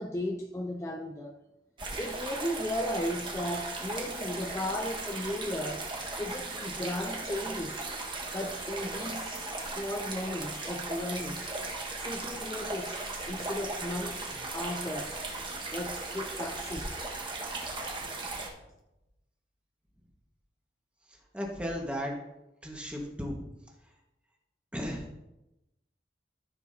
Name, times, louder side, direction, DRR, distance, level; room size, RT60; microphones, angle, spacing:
voice 1, 0.0-1.4 2.0-5.9 6.2-7.9 8.3-11.5 12.0-15.2 15.7-17.1, left 1 dB, 15° left, 0.4 m, -36 dB
sound 1, 1.8-18.5, right 2 dB, 25° right, 1.5 m, -37 dB
voice 2, 21.3-22.1 22.6-23.4 24.7-25.2, equal, 5° right, 1.5 m, -35 dB
14.0 x 7.1 x 2.8 m
head